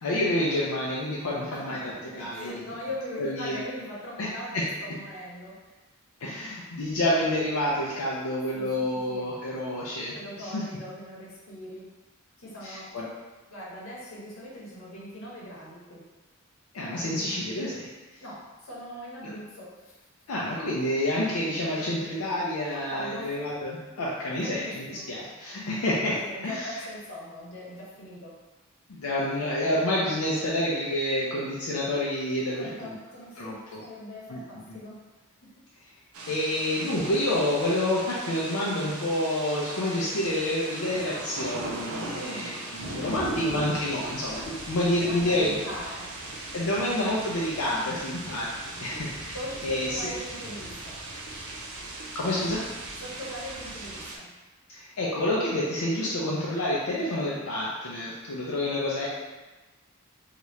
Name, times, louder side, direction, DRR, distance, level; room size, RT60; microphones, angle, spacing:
voice 1, 0.0-2.6 3.2-3.6 4.2-4.3 4.5-4.6 6.2-10.6 12.6-13.1 16.7-17.9 20.3-26.2 26.4-26.8 28.9-32.9 33.4-33.8 34.3-34.4 34.7-34.8 36.3-45.5 46.5-48.5 48.8-49.4 49.6-50.1 52.1-52.6 54.7-59.1, left 1 dB, 90° left, -6 dB, 0.5 m, -28 dB
voice 2, 1.5-5.7 8.5-9.3 10.1-11.9 12.4-12.9 13.5-16.0 18.2-19.9 22.7-23.4 24.4-25.1 26.1-28.4 32.6-35.0 42.1-42.6 43.3-43.7 45.0-46.2 49.3-51.0 52.9-54.3, equal, 65° left, -6 dB, 1.0 m, -40 dB
sound 1, 36.1-54.2, right 2 dB, 85° right, 0.5 m, -38 dB
2.8 x 2.4 x 3.1 m, 1.2 s
head